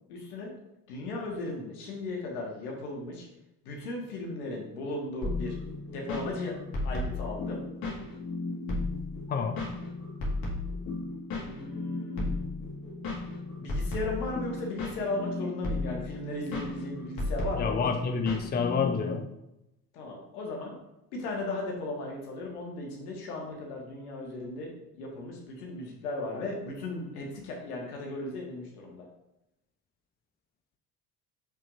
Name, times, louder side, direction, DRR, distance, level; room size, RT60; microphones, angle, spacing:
voice 1, 0.1-0.5 0.9-3.3 3.6-5.6 5.9-7.6 11.4-12.5 13.6-17.8 19.9-20.7 21.1-29.1, left 2 dB, 70° left, 0 dB, 1.7 m, -36 dB
sound 1, 5.2-19.1, left 2 dB, 45° left, 2.2 m, -34 dB
voice 2, 9.3-9.6 17.6-19.3, left 5 dB, 20° left, 5 dB, 0.6 m, -28 dB
6.6 x 5.8 x 2.6 m, 0.89 s
figure-of-eight pair, 55°, 47 cm